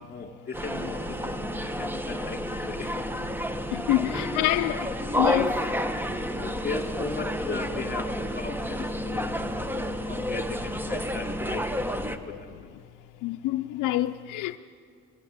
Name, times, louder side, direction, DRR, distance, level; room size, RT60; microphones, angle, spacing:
voice 1, 0.0-1.4 1.8-3.1 3.6-3.7 4.0-4.5 6.3-9.8 10.1-12.5, left 4 dB, 35° left, 2.9 m, -37 dB
sound 1, 0.5-12.2, equal, 5° right, 1.3 m, -30 dB
voice 2, 3.7-4.9 5.2-5.7 12.3-12.4 13.2-14.6, left 15 dB, 90° left, 0.5 m, -27 dB
20.0 x 16.0 x 9.4 m
cardioid pair, 90°, 30 cm